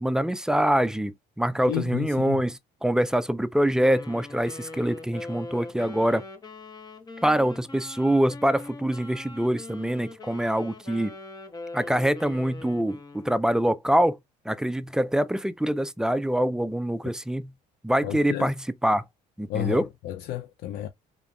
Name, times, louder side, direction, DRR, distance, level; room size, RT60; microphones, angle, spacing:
voice 1, 0.0-6.2 7.2-11.1 11.7-14.2 14.5-17.5 17.8-19.0 19.4-19.9, right 1 dB, 5° right, 0.3 m, -25 dB
voice 2, 1.7-2.4 18.0-18.5 19.5-20.9, left 13 dB, 80° left, 0.5 m, -31 dB
Wind instrument woodwind instrument, 3.8-13.4, left 2 dB, 25° left, 1.0 m, -42 dB
3.7 x 3.4 x 2.2 m
cardioid pair, 110°, 17 cm